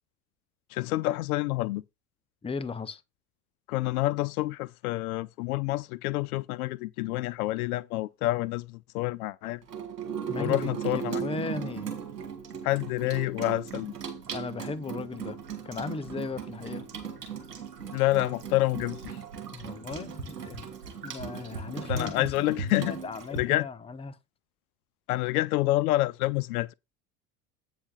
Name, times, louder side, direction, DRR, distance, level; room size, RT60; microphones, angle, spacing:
voice 1, 0.7-1.8 3.7-9.6 10.4-11.2 12.6-13.9 17.9-19.2 21.7-22.9 23.3-23.7 25.1-26.7, left 18 dB, 65° left, 0.6 m, -28 dB
voice 2, 2.4-3.0 10.3-11.9 14.3-15.4 15.6-16.9 19.5-20.7 21.0-22.3 22.8-24.2, left 4 dB, 10° left, 0.7 m, -36 dB
Water tap faucet / Sink (filling or washing), 9.6-23.4, right 6 dB, 85° right, 2.5 m, -37 dB
8.7 x 4.9 x 5.3 m
hypercardioid pair, 70°, 47 cm